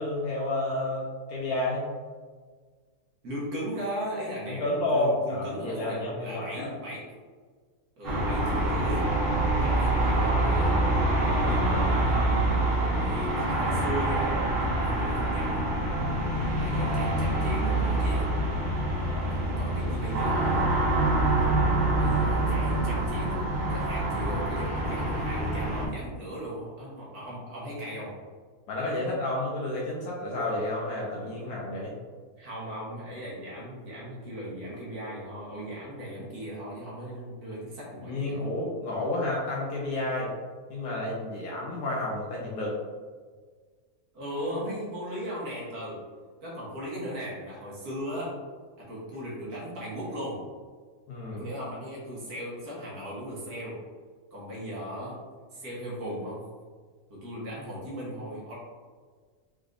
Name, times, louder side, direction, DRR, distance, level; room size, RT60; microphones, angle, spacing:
voice 1, 0.0-1.9 4.5-6.7 19.1-19.7 28.7-31.9 38.0-40.3 40.7-42.8 51.1-51.5, left 2 dB, 80° left, -4 dB, 1.2 m, -30 dB
voice 2, 3.2-7.0 8.0-9.1 9.6-10.8 11.2-12.5 12.9-14.4 14.8-15.7 16.6-18.3 19.3-20.7 21.4-21.5 21.8-28.1 32.4-38.5 44.1-46.0 46.4-48.3 48.8-50.4 51.4-53.8 54.3-55.2 55.5-56.4 57.1-58.5, equal, 80° right, -6 dB, 1.8 m, -37 dB
sound 1, 8.0-25.9, right 1 dB, 40° right, 1.7 m, -26 dB
4.8 x 3.4 x 2.5 m, 1.5 s
omnidirectional pair, 1.6 m